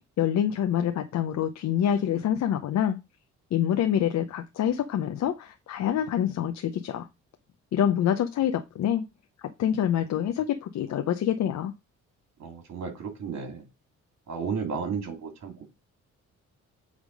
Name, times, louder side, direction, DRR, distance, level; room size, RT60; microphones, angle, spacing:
voice 1, 0.2-3.0 3.5-7.1 7.7-9.0 9.6-11.7, left 10 dB, 65° left, 0.8 m, -26 dB
voice 2, 12.4-13.7 14.3-15.6, right 6 dB, 65° right, 2.7 m, -33 dB
8.3 x 3.6 x 5.2 m
cardioid pair, 90°, 30 cm